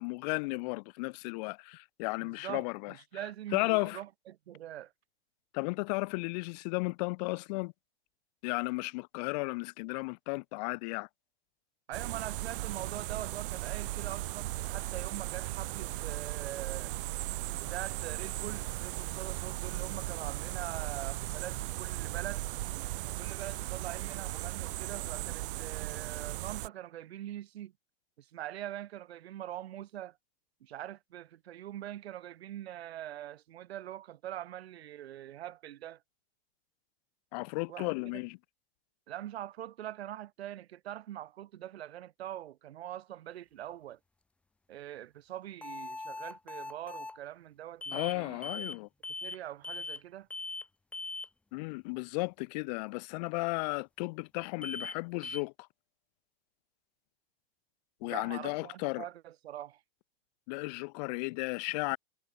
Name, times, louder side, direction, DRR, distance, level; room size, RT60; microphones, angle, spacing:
voice 1, 0.0-2.9 3.5-4.0 5.5-7.7 8.4-11.1 37.3-38.4 47.9-48.9 51.5-55.5 58.0-59.0 60.5-62.0, left 28 dB, 40° left, 0.8 m, -34 dB
voice 2, 2.2-4.9 11.9-16.9 17.5-22.4 23.0-27.7 28.2-30.2 30.6-36.0 37.7-38.2 39.1-44.0 44.7-48.4 49.2-50.3 58.0-59.8, right 12 dB, 80° right, 2.5 m, -43 dB
sound 1, 11.9-26.7, right 18 dB, 60° right, 0.6 m, -37 dB
sound 2, 45.6-47.2 47.8-48.2 48.4-48.8 49.0-49.4 49.6-50.0 50.3-50.7 50.9-51.3 54.6-55.0 55.2-55.4, left 3 dB, 5° left, 0.5 m, -40 dB
supercardioid pair, 145°, 31 cm